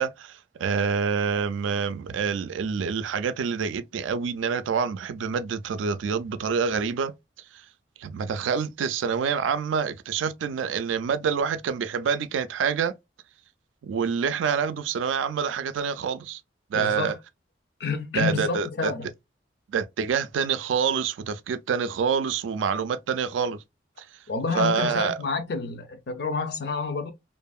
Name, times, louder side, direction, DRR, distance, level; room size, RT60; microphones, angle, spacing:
voice 1, 0.0-7.1 8.0-12.9 13.8-16.4 16.7-17.1 18.2-18.9 19.7-23.6 24.0-24.1 24.5-25.2, right 6 dB, 90° right, 0.3 m, -27 dB
voice 2, 16.7-17.2 17.8-19.1 24.3-27.1, left 4 dB, 60° left, 0.4 m, -29 dB
2.7 x 2.5 x 2.3 m
head